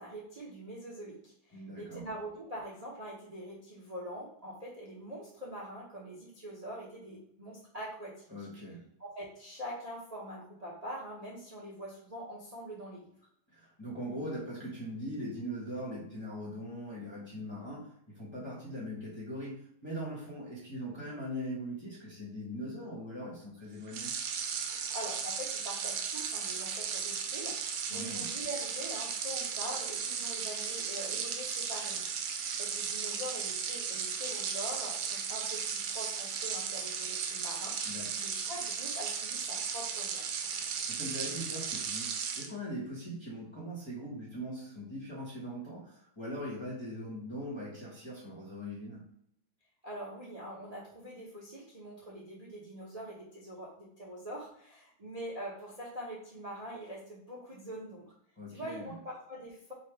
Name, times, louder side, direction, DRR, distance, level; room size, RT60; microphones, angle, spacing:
voice 1, 0.0-8.5 9.0-13.1 24.9-32.0 32.6-37.7 38.2-40.2 49.8-58.1 58.5-59.7, equal, 35° right, -5 dB, 0.6 m, -44 dB
voice 2, 1.5-2.1 8.3-8.9 13.5-24.2 27.9-28.2 37.8-38.2 40.9-49.0 58.4-58.9, equal, 20° left, -6 dB, 0.8 m, -41 dB
sound 1, 23.9-42.5, right 6 dB, 75° right, 1.2 m, -36 dB
3.4 x 2.9 x 4.4 m, 0.71 s
omnidirectional pair, 2.2 m